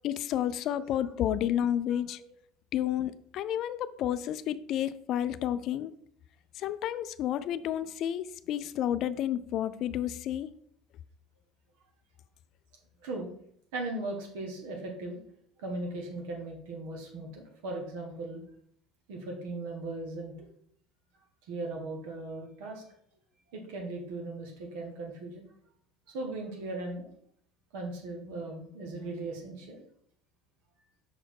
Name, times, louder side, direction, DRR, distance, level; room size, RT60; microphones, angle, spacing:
voice 1, 0.0-2.2 2.7-5.9 6.6-10.5, left 11 dB, 45° left, 0.3 m, -31 dB
voice 2, 0.7-1.1 1.9-2.3 13.0-13.3 13.7-15.2 15.6-18.4 19.1-20.5 21.5-22.8 23.5-25.4 26.1-27.1 27.7-29.8, right 2 dB, 75° right, 1.5 m, -38 dB
6.2 x 4.2 x 4.7 m
cardioid pair, 165°, 0 cm